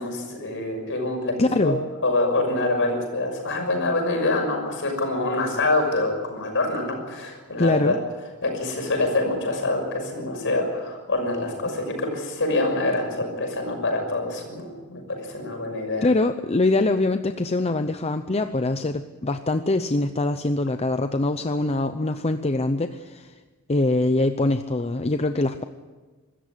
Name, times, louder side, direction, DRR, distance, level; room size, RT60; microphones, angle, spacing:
voice 1, 0.0-1.7 2.0-8.0 8.4-16.1, left 2 dB, 60° left, 3 dB, 6.3 m, -25 dB
voice 2, 1.4-1.8 7.6-8.0 16.0-23.3 23.7-25.6, left 2 dB, 30° left, 9 dB, 0.7 m, -23 dB
24.5 x 14.0 x 9.6 m, 1.3 s
head